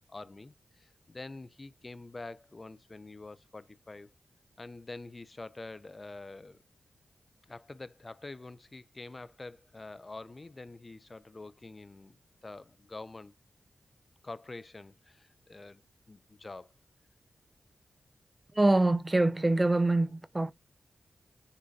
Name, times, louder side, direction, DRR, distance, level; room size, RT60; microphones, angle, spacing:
voice 1, 0.0-4.1 4.6-6.6 7.5-12.2 12.4-13.3 14.2-15.8 16.1-16.7, left 2 dB, 35° left, 0.7 m, -46 dB
voice 2, 18.5-20.5, right 2 dB, 25° right, 0.7 m, -25 dB
9.8 x 3.7 x 2.7 m
cardioid pair, 60°, 0 cm